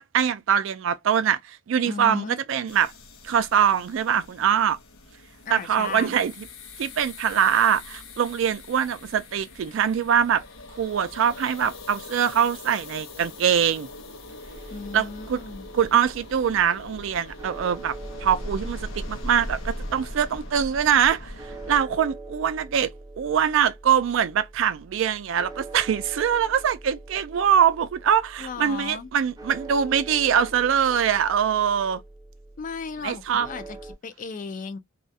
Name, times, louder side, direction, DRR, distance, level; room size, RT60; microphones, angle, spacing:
voice 1, 0.0-2.9 3.2-4.8 5.5-6.3 6.8-10.4 10.8-13.9 14.9-15.4 15.7-21.3 21.7-22.9 23.2-32.0 33.0-33.5, right 8 dB, 65° right, 0.3 m, -23 dB
voice 2, 1.8-2.4 5.5-6.2 14.7-15.7 28.4-29.1 32.6-33.8 34.0-34.8, left 5 dB, 40° left, 0.4 m, -35 dB
sound 1, 2.7-21.8, left 1 dB, 80° left, 0.7 m, -41 dB
sound 2, 14.5-33.9, right 2 dB, 20° right, 0.6 m, -44 dB
2.3 x 2.1 x 2.6 m
head